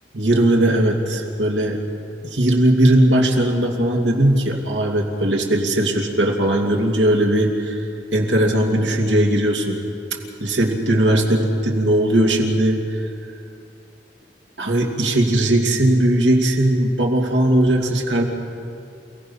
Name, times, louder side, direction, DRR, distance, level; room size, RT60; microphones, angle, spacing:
voice 1, 0.1-1.8 2.2-7.8 8.1-9.8 10.4-13.1 14.6-18.2, right 1 dB, 85° right, 0 dB, 2.7 m, -18 dB
28.5 x 17.5 x 5.6 m, 2.5 s
head